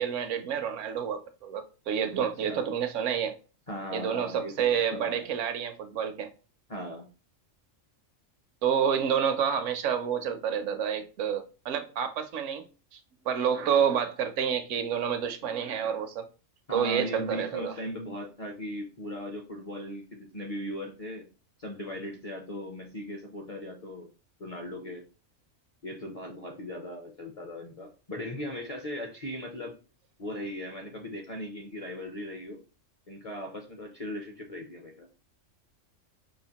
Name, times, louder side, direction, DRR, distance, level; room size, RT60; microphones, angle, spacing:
voice 1, 0.0-3.4 3.9-6.3 8.6-12.7 12.9-13.0 13.3-16.2 16.7-17.7, right 8 dB, 75° right, 0.9 m, -29 dB
voice 2, 2.2-2.7 3.7-5.3 6.7-7.1 16.7-21.3 21.6-24.1 24.4-25.0 25.8-29.7 30.2-32.6 33.1-35.1, left 1 dB, 45° left, 0.5 m, -38 dB
4.9 x 2.4 x 2.8 m
omnidirectional pair, 1.3 m